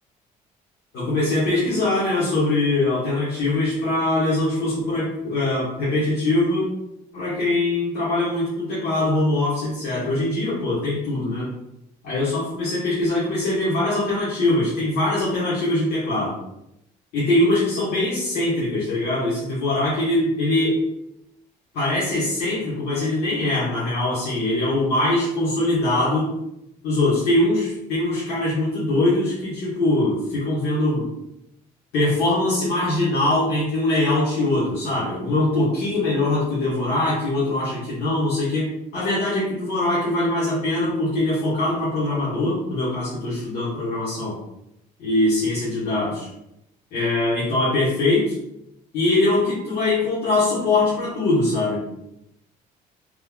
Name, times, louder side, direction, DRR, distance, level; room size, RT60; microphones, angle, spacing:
voice 1, 0.9-6.7 7.1-11.5 12.0-16.3 17.1-20.8 21.7-26.3 26.8-31.1 31.9-44.4 45.0-46.3 46.9-48.4 48.9-51.9, left 2 dB, 80° left, -9 dB, 1.4 m, -22 dB
3.3 x 2.3 x 3.7 m, 0.82 s
cardioid pair, 110°, 17 cm